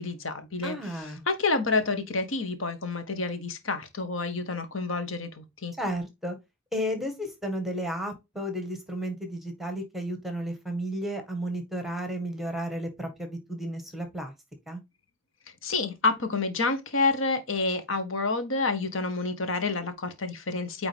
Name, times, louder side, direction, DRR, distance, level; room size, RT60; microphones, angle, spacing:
voice 1, 0.0-5.7 15.6-20.9, left 3 dB, 70° left, 1.4 m, -29 dB
voice 2, 0.6-1.2 5.8-6.4 6.7-14.3 14.7-14.8, equal, ahead, 1.8 m, -33 dB
9.2 x 4.0 x 3.4 m
head